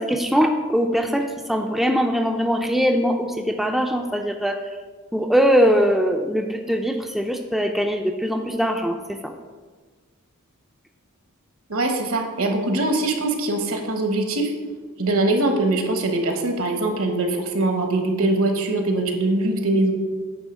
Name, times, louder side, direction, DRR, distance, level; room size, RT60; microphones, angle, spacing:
voice 1, 0.0-4.6 5.1-9.3, equal, ahead, 3 dB, 0.4 m, -21 dB
voice 2, 11.7-14.5 15.0-19.9, right 2 dB, 70° right, 4 dB, 1.1 m, -22 dB
9.2 x 3.5 x 6.1 m, 1.4 s
head